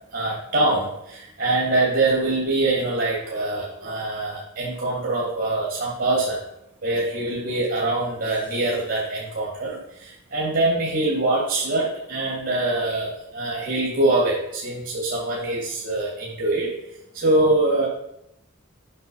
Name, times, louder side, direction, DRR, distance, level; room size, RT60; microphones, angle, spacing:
voice 1, 0.1-6.4 6.8-16.7 17.1-17.9, right 2 dB, 55° right, -4 dB, 2.5 m, -24 dB
8.1 x 6.5 x 5.8 m, 0.83 s
head